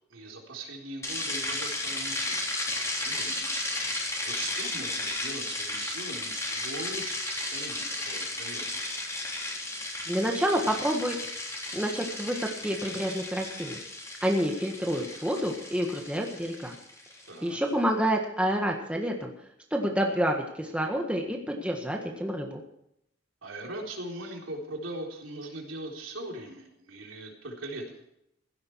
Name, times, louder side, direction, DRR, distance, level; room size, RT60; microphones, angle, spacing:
voice 1, 0.1-2.4 2.7-8.7 17.3-17.6 23.4-28.0, right 2 dB, 90° right, 0 dB, 3.9 m, -40 dB
sound 1, 1.0-17.3, left 2 dB, 15° left, 3.5 m, -34 dB
voice 2, 10.1-11.2 11.7-13.9 14.2-16.7 17.4-19.3 19.7-22.6, equal, 5° right, 1 dB, 1.6 m, -28 dB
16.0 x 12.5 x 4.7 m, 0.78 s
head